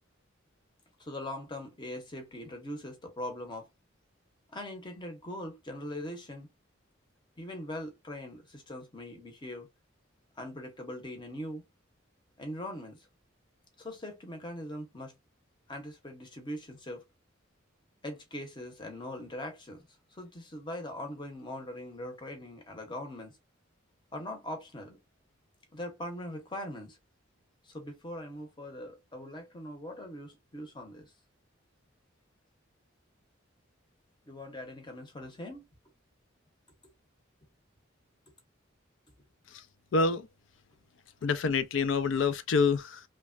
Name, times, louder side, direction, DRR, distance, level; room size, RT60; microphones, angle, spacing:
voice 1, 1.0-3.7 4.5-6.5 7.4-9.7 10.4-11.6 12.4-13.1 13.8-15.1 15.7-17.0 18.0-19.9 20.1-23.3 24.1-25.0 25.7-27.0 27.6-31.1 34.3-35.6, left 1 dB, 20° left, 0.8 m, -41 dB
voice 2, 39.9-40.3 41.2-43.0, left 4 dB, 65° left, 0.4 m, -27 dB
3.1 x 2.2 x 2.4 m
head